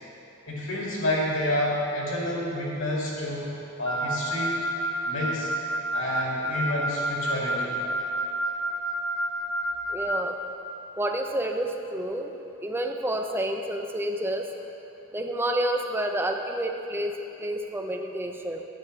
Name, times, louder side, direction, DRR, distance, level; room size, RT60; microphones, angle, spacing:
voice 1, 0.5-4.6 5.0-5.5 5.9-7.8, left 1 dB, 70° left, -5 dB, 2.2 m, -29 dB
Wind instrument woodwind instrument, 3.8-10.3, right 1 dB, 15° left, 1.0 m, -30 dB
voice 2, 9.9-10.4 11.0-12.3 12.6-14.5 15.1-18.7, right 1 dB, 10° right, 4 dB, 0.5 m, -29 dB
11.5 x 9.0 x 3.3 m, 2.8 s
head